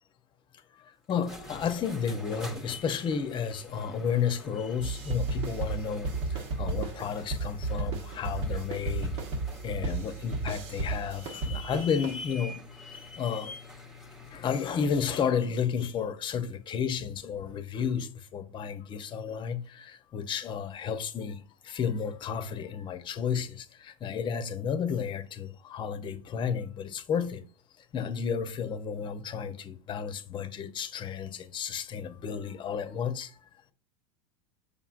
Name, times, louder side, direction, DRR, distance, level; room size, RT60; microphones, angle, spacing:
voice 1, 1.1-9.1 9.6-12.6 13.2-13.5 14.3-27.4 27.9-33.3, left 7 dB, 30° left, 0.8 m, -32 dB
sound 1, 1.1-15.3, left 2 dB, 5° right, 1.0 m, -46 dB
sound 2, 4.8-12.1, right 3 dB, 65° right, 1.2 m, -33 dB
6.9 x 5.6 x 2.5 m
hypercardioid pair, 110°, 16 cm